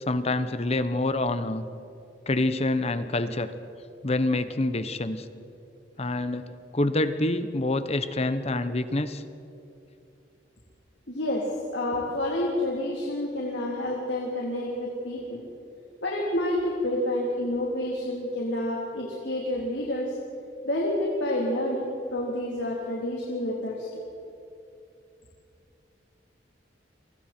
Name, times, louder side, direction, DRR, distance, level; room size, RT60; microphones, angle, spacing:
voice 1, 0.0-1.6 2.3-3.5 4.0-5.3 6.0-6.5 6.7-9.2, left 2 dB, 35° left, 11 dB, 1.0 m, -26 dB
voice 2, 11.1-11.5 11.7-15.4 16.0-20.2 20.6-23.9, left 1 dB, 75° left, -3 dB, 3.7 m, -29 dB
30.0 x 24.5 x 4.5 m, 2.7 s
head